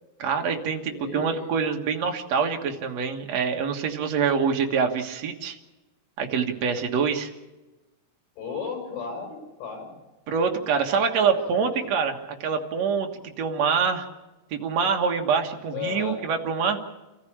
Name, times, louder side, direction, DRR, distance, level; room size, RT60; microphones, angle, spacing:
voice 1, 0.2-5.6 6.2-7.3 10.3-12.1 12.4-13.1 13.4-14.1 14.5-16.8, right 6 dB, 70° right, 4 dB, 1.6 m, -25 dB
voice 2, 0.8-1.5 8.4-9.9 11.3-11.9 15.7-16.2, left 6 dB, 75° left, 2 dB, 9.3 m, -35 dB
27.0 x 15.0 x 8.7 m, 1.1 s
omnidirectional pair, 5.4 m